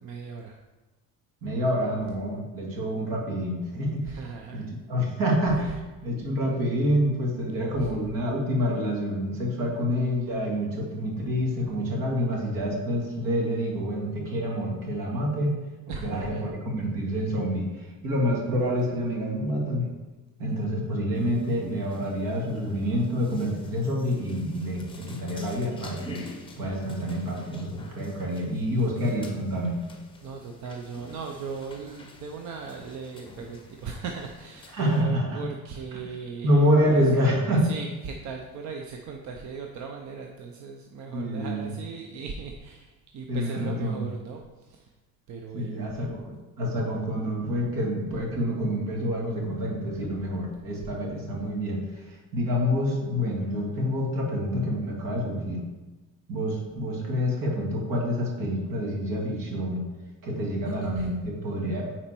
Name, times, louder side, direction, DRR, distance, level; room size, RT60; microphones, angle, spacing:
voice 1, 0.0-0.6 4.1-4.7 5.6-5.7 7.8-8.0 15.9-16.4 17.2-17.3 30.2-37.1 37.5-44.9 45.3-46.0 60.7-61.1, right 5 dB, 55° right, 2 dB, 0.7 m, -38 dB
voice 2, 1.4-4.2 4.5-4.6 4.9-5.7 6.0-15.5 16.0-19.9 20.4-26.2 26.6-29.8 34.7-35.4 36.4-37.7 41.1-41.7 43.3-44.0 45.5-55.6 56.3-59.8 60.2-61.9, equal, 75° right, -2 dB, 2.3 m, -27 dB
sound 1, 21.1-35.0, left 2 dB, 15° left, 0.7 m, -48 dB
9.6 x 4.4 x 4.4 m, 1.2 s
cardioid pair, 170°, 34 cm